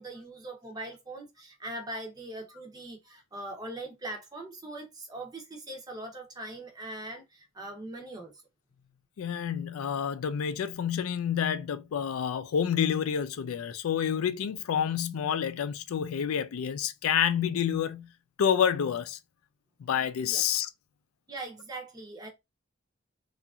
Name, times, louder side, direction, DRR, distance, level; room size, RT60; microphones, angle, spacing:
voice 1, 0.0-8.4 20.2-20.4 21.3-22.3, right 2 dB, 20° right, 0.6 m, -41 dB
voice 2, 9.2-18.1 18.4-19.2 19.8-20.7, left 8 dB, 90° left, 0.3 m, -28 dB
2.8 x 2.4 x 2.3 m
head